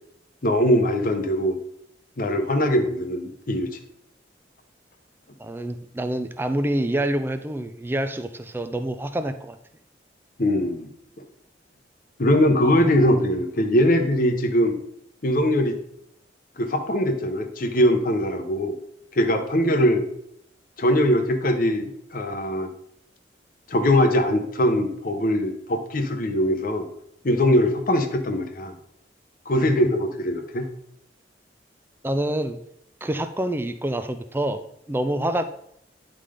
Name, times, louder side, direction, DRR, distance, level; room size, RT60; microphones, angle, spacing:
voice 1, 0.4-1.6 2.2-3.7 10.4-10.9 11.2-11.3 12.2-14.8 15.2-15.8 16.6-18.7 19.1-20.0 20.8-22.7 23.7-26.9 27.2-28.7 29.5-30.7, equal, 50° left, 5 dB, 0.8 m, -21 dB
voice 2, 5.4-9.6 29.5-29.7 32.0-32.6 33.0-34.6 34.9-35.4, right 1 dB, 10° right, 9 dB, 0.4 m, -27 dB
9.9 x 3.8 x 5.0 m, 0.72 s
head